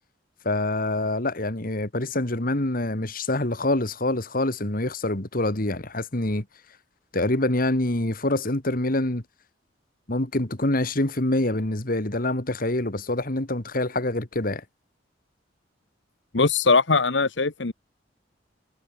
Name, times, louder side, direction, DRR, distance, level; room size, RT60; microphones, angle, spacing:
voice 1, 0.4-6.4 7.1-9.2 10.1-14.6, left 1 dB, 50° left, 2.3 m, -25 dB
voice 2, 16.3-17.7, left 4 dB, 75° left, 1.3 m, -21 dB
head